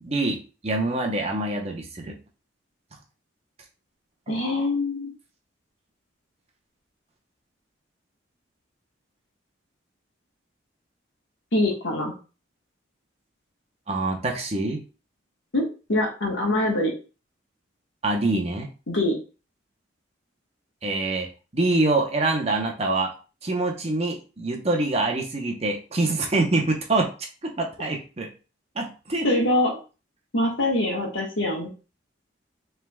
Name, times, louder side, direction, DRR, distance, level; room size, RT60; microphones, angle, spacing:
voice 1, 0.0-2.2 4.3-4.4 13.9-14.8 18.0-18.7 20.8-21.3 21.5-23.1 23.4-27.1 27.4-28.3 28.7-29.5, right 2 dB, 30° right, 1 dB, 0.8 m, -25 dB
voice 2, 4.3-5.1 11.5-12.1 15.5-16.9 18.9-19.2 29.2-29.8 30.3-31.7, left 1 dB, 75° left, -1 dB, 1.4 m, -24 dB
5.5 x 3.5 x 2.3 m, 0.34 s
head